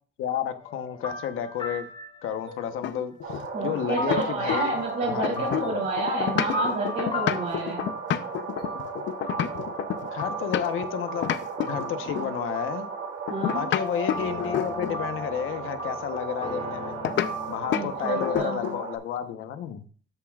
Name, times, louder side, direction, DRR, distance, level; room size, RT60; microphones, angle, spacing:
voice 1, 0.2-1.9 2.2-4.7 5.1-5.8 10.1-12.9 13.5-17.0 17.5-19.8, left 9 dB, 85° left, 1.1 m, -31 dB
sound 1, 0.6-18.4, left 1 dB, 25° left, 1.5 m, -37 dB
sound 2, 2.8-4.8 5.1-10.9 11.2-12.4 13.3-15.1 17.0-17.3 17.7-17.9 18.2-18.9, left 10 dB, 65° left, 0.6 m, -29 dB
sound 3, 3.2-19.0, right 6 dB, 75° right, 2.7 m, -36 dB
voice 2, 3.5-7.8 13.3-13.6 17.7-18.6, right 3 dB, 55° right, 3.0 m, -29 dB
13.0 x 7.2 x 2.4 m
cardioid pair, 150°, 21 cm